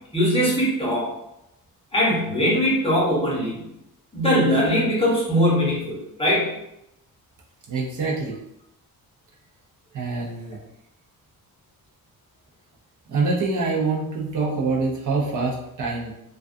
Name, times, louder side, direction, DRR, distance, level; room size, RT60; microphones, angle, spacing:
voice 1, 0.1-1.1 1.9-3.7 4.1-6.5, equal, 15° left, -6 dB, 0.8 m, -21 dB
voice 2, 7.7-8.4 9.9-10.6 13.1-16.1, right 3 dB, 55° right, -4 dB, 0.6 m, -25 dB
2.3 x 2.3 x 2.4 m, 0.85 s
wide cardioid pair, 125°, 37 cm